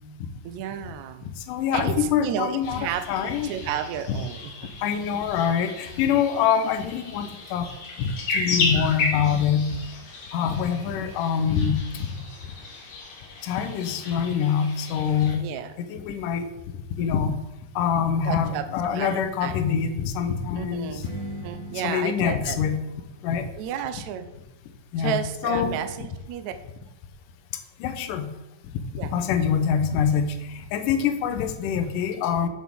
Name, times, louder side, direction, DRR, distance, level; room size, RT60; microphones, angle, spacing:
voice 1, 0.4-1.3 1.7-4.5 4.8-4.9 15.4-15.7 18.2-19.6 20.6-21.1 21.4-22.6 23.6-24.3 25.0-26.5 29.0-29.1, right 9 dB, 80° right, 9 dB, 1.7 m, -32 dB
voice 2, 1.5-3.5 4.1-4.2 4.8-7.7 8.0-9.7 10.3-11.8 13.4-15.4 15.8-16.5 17.0-17.4 17.8-21.0 21.8-22.8 23.2-23.5 24.9-25.2 25.4-25.8 27.8-28.3 28.9-32.5, left 7 dB, 75° left, 7 dB, 2.3 m, -25 dB
sound 1, 2.6-15.4, left 3 dB, 55° left, 3.0 m, -34 dB
Strum, 21.0-26.2, right 1 dB, 60° right, 0.9 m, -43 dB
11.0 x 7.4 x 3.6 m, 1.0 s
omnidirectional pair, 4.1 m